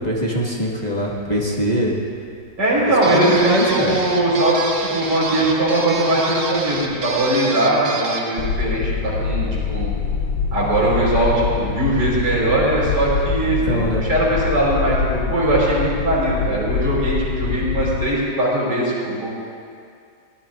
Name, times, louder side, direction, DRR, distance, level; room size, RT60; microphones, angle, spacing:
voice 1, 0.0-1.9 2.8-4.0 13.5-14.1, equal, 25° left, -4 dB, 1.7 m, -23 dB
sound 1, 1.1-1.7 2.7-3.3 4.3-5.3 5.6-5.9 6.3-7.4 8.4-18.1, left 5 dB, 75° left, 1.2 m, -24 dB
voice 2, 2.6-9.9 10.5-13.8 14.1-19.3, right 1 dB, 80° right, -6 dB, 5.0 m, -20 dB
sound 2, 3.0-8.3, right 3 dB, 50° right, 1.5 m, -27 dB
23.0 x 17.5 x 2.5 m, 2.3 s
omnidirectional pair, 1.8 m